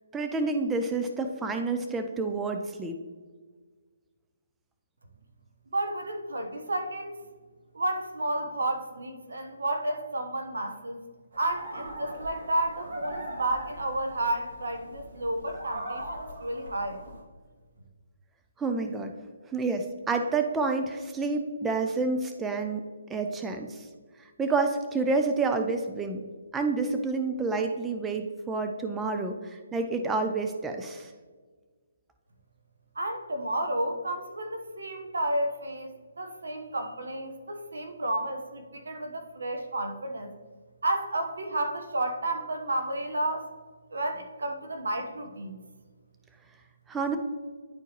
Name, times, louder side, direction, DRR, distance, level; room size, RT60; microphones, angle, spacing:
voice 1, 0.1-3.0 18.6-19.1 19.5-22.8 23.1-23.9 24.4-26.2 26.5-31.1 46.9-47.2, right 3 dB, 10° right, 5 dB, 0.5 m, -29 dB
voice 2, 5.7-7.2 7.7-11.1 11.4-17.0 32.9-40.3 40.8-43.5 43.9-45.6, right 1 dB, 80° right, 6 dB, 1.1 m, -31 dB
sound 1, 11.3-17.2, right 1 dB, 60° right, 2.1 m, -40 dB
10.5 x 4.4 x 3.0 m, 1.5 s
hypercardioid pair, 145°, 0 cm